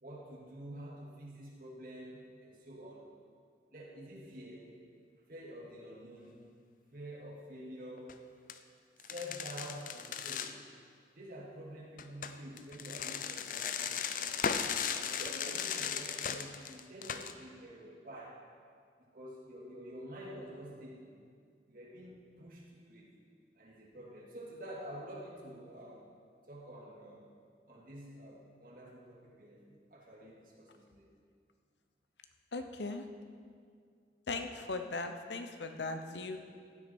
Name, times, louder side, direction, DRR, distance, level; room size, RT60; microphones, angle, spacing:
voice 1, 0.0-3.1 3.7-4.7 5.3-6.5 6.9-8.2 9.1-10.6 11.1-14.5 14.9-18.4 19.0-21.2 21.7-23.1 23.6-26.1 26.5-27.3 27.7-31.1 36.2-36.3, equal, 55° right, -3 dB, 2.3 m, -48 dB
sound 1, 8.0-8.1 8.5-8.6 9.0-10.5 12.0-17.3, left 7 dB, 50° left, 0.5 m, -37 dB
voice 2, 32.5-33.1 34.3-36.4, left 3 dB, 80° left, 7 dB, 0.9 m, -38 dB
15.5 x 9.4 x 4.5 m, 2.1 s
head